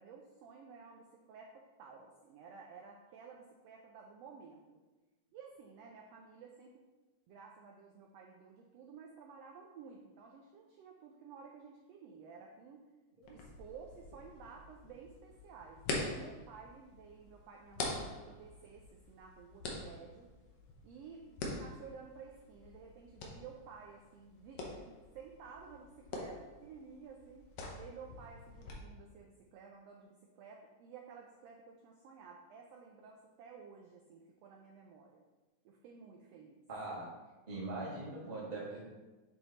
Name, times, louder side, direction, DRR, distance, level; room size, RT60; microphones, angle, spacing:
voice 1, 0.0-4.8 5.3-6.7 7.3-12.9 13.3-20.3 20.8-27.5 27.7-35.2 35.6-36.6, right 5 dB, 85° right, 0 dB, 1.4 m, -54 dB
sound 1, 13.2-28.7, left 2 dB, 65° left, 1.7 m, -45 dB
voice 2, 36.7-37.1 37.5-38.8, right 2 dB, 25° right, -6 dB, 0.9 m, -41 dB
7.6 x 3.5 x 4.0 m, 1.2 s
omnidirectional pair, 3.5 m